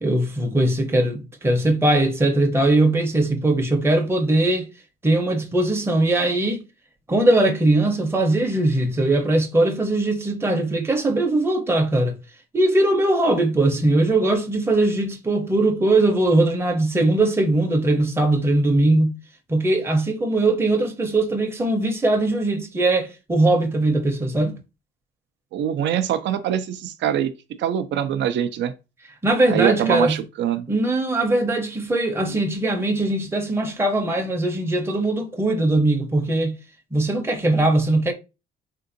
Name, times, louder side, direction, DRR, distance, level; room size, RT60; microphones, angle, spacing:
voice 1, 0.0-4.7 5.0-6.6 7.1-12.2 12.5-19.2 19.5-24.6 29.2-30.2 30.7-36.6 36.9-38.1, right 2 dB, 10° right, 0.6 m, -20 dB
voice 2, 25.5-27.3 27.6-28.7 29.5-30.7, right 10 dB, 65° right, 0.4 m, -23 dB
3.7 x 2.6 x 2.5 m
cardioid pair, 90°, 20 cm